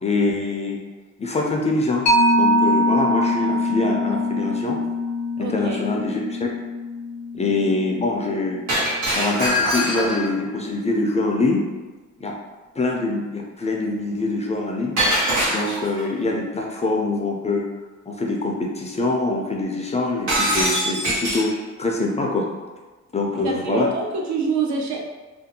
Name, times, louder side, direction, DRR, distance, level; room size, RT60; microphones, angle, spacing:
voice 1, 0.0-0.8 1.2-2.1 2.3-4.8 5.4-6.5 7.3-8.6 9.1-11.7 12.2-12.3 12.8-15.0 15.5-17.6 18.1-21.5 21.8-22.5 23.1-23.9, left 2 dB, 25° left, 0 dB, 0.3 m, -24 dB
Mallet percussion, 2.1-9.1, left 1 dB, 80° left, 0.6 m, -23 dB
voice 2, 5.4-5.8 23.4-25.0, right 4 dB, 65° right, 0 dB, 0.6 m, -25 dB
Shatter, 8.7-10.3 15.0-16.0 20.3-21.5, equal, 85° right, 1.0 m, -22 dB
2.5 x 2.2 x 2.7 m, 1.3 s
cardioid pair, 90°, 30 cm